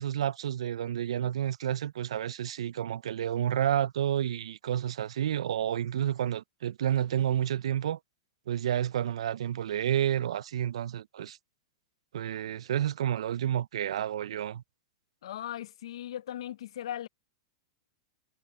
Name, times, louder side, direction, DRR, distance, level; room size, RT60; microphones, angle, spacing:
voice 1, 0.0-8.0 8.5-11.4 12.1-14.6, right 10 dB, 85° right, 0.4 m, -30 dB
voice 2, 15.2-17.1, left 11 dB, 65° left, 0.6 m, -38 dB
supercardioid pair, 175°, 3 cm